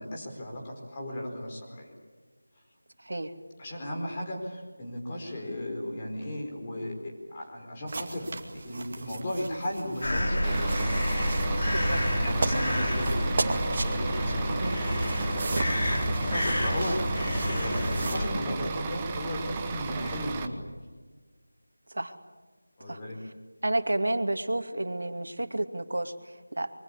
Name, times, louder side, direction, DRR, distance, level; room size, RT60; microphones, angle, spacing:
voice 1, 0.0-1.9 3.6-8.3 8.5-10.7 12.2-13.5 13.8-15.0 15.3-17.1 17.5-20.6 22.8-23.2, left 1 dB, 20° left, 0 dB, 4.6 m, -36 dB
voice 2, 3.0-3.3 11.7-12.0 14.6-14.8 21.9-22.1 22.9-23.0 23.6-26.7, right 1 dB, 75° right, 7 dB, 2.6 m, -31 dB
sound 1, 7.9-13.9 14.9-18.2, right 3 dB, 30° right, 2.4 m, -37 dB
sound 2, 10.0-18.3, equal, 50° left, 6.7 m, -28 dB
Bus / Idling, 10.4-20.5, right 4 dB, 10° right, 1.1 m, -35 dB
26.0 x 24.0 x 8.5 m, 1.4 s
figure-of-eight pair, 175°, 0 cm